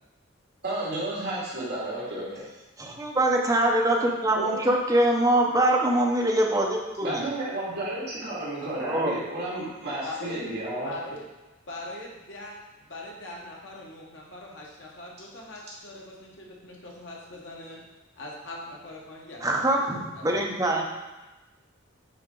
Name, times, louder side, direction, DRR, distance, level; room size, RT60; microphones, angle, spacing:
voice 1, 0.6-2.4 4.3-4.6 7.0-10.9, right 1 dB, 55° right, -8 dB, 2.4 m, -32 dB
voice 2, 2.8-7.3 8.8-9.2 19.4-20.9, right 1 dB, 15° right, 0 dB, 0.8 m, -23 dB
voice 3, 10.0-10.4 10.8-11.3 11.7-12.6 12.9-17.8 18.2-19.8 20.1-20.4, left 2 dB, 60° left, -2 dB, 1.4 m, -41 dB
9.0 x 4.3 x 3.8 m, 1.1 s
head